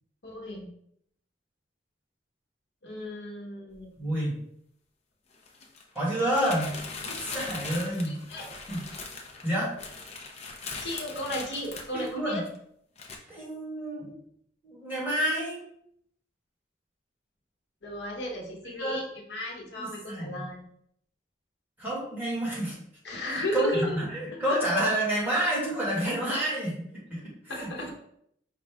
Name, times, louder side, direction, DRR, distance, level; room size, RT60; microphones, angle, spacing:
voice 1, 0.2-0.7 2.8-3.9 8.1-8.5 10.8-12.4 17.8-20.6 23.0-24.0 27.5-27.9, left 1 dB, 65° left, -1 dB, 1.0 m, -34 dB
sound 1, 3.7-3.8 5.3-12.6 13.0-13.2, left 4 dB, 35° left, 0.6 m, -40 dB
voice 2, 4.0-4.4 5.9-8.2 8.7-8.8 9.4-9.7 11.9-12.4 13.3-14.2 14.6-15.6 18.7-19.0 19.8-20.4 21.8-22.8 23.3-26.8 27.1-27.2 27.6-27.7, right 1 dB, 10° right, -6 dB, 1.6 m, -29 dB
5.2 x 2.4 x 3.4 m, 0.70 s
head